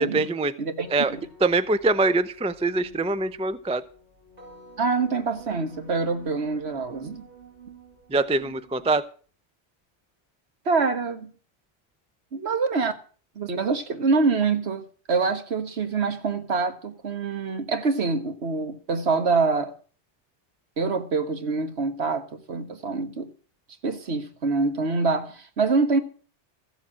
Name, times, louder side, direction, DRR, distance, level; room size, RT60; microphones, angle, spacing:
voice 1, 0.0-0.5 0.9-3.8 8.1-9.0, right 3 dB, 10° right, 0.4 m, -24 dB
sound 1, 0.8-9.0, right 2 dB, 35° right, 5.3 m, -49 dB
voice 2, 4.8-7.3 10.6-11.3 12.3-12.9 13.3-19.7 20.8-23.3 23.8-26.0, right 4 dB, 65° right, 1.6 m, -25 dB
14.5 x 7.2 x 7.5 m
omnidirectional pair, 1.2 m